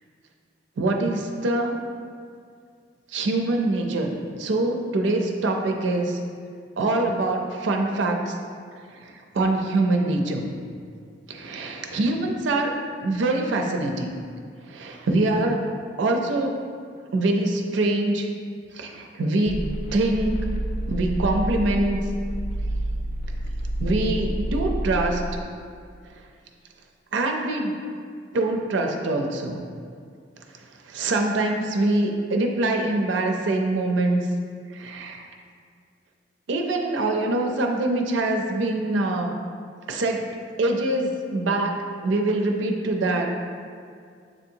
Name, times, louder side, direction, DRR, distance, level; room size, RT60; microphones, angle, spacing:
voice 1, 0.8-1.8 3.1-4.1 4.4-6.2 6.8-8.4 9.0-10.5 11.3-14.1 14.7-15.7 16.0-16.6 17.1-18.3 18.7-19.6 19.9-20.4 20.9-22.0 23.8-25.4 27.1-27.7 28.3-29.6 30.8-34.2 34.7-35.3 36.5-39.4 39.9-43.3, right 2 dB, 70° right, 2 dB, 0.4 m, -24 dB
sound 1, 19.5-25.4, right 1 dB, 45° left, 0.3 m, -29 dB
7.3 x 2.8 x 2.6 m, 2.2 s
head